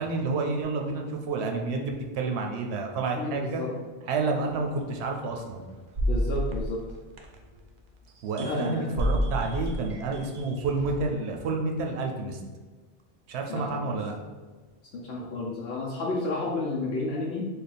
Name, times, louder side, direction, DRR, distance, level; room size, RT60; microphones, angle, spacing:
voice 1, 0.0-3.6 4.0-5.6 8.2-12.4 13.3-14.1, right 3 dB, 85° right, 2 dB, 0.8 m, -29 dB
voice 2, 3.1-3.7 6.1-6.8 8.4-8.9 13.5-13.9 14.9-17.5, left 2 dB, 70° left, -3 dB, 0.8 m, -31 dB
sound 1, 4.8-4.9 5.9-7.6 8.4-8.7 9.0-11.1, equal, 55° right, 0.5 m, -29 dB
3.4 x 2.3 x 4.0 m, 1.4 s
omnidirectional pair, 1.1 m